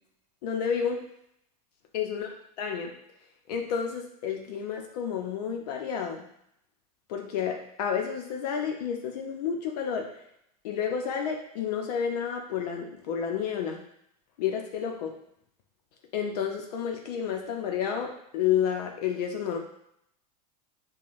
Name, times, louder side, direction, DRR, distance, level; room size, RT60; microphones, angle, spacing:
voice 1, 0.4-1.0 1.9-2.3 2.6-2.9 3.5-6.2 7.1-10.1 10.6-13.8 14.4-15.1 16.1-19.6, left 7 dB, 75° left, 2 dB, 0.7 m, -30 dB
5.4 x 2.2 x 2.5 m, 0.74 s
supercardioid pair, 120°, 20 cm